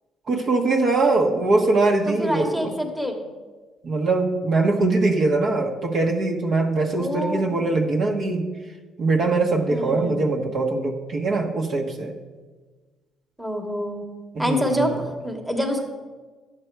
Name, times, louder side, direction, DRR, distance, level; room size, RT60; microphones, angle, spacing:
voice 1, 0.3-2.7 3.8-8.5 9.0-12.1 14.3-15.0, right 3 dB, 55° right, 1 dB, 1.2 m, -22 dB
voice 2, 2.1-3.2 6.9-7.7 9.7-10.3 13.4-14.0 14.4-15.8, equal, 5° right, 2 dB, 1.3 m, -27 dB
11.0 x 7.8 x 4.6 m, 1.4 s
cardioid pair, 110°, 0 cm